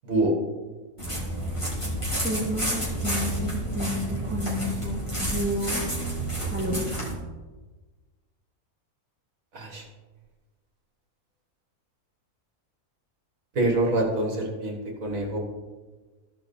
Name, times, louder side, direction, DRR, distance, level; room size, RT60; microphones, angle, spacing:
voice 1, 0.0-0.4 9.5-9.9 13.6-15.4, right 2 dB, 70° right, 1 dB, 2.0 m, -25 dB
sound 1, 1.0-7.1, right 1 dB, 20° left, 2.7 m, -30 dB
voice 2, 2.2-5.9 6.5-6.9, equal, 5° right, -4 dB, 2.2 m, -31 dB
14.5 x 5.1 x 4.2 m, 1.3 s
omnidirectional pair, 1.5 m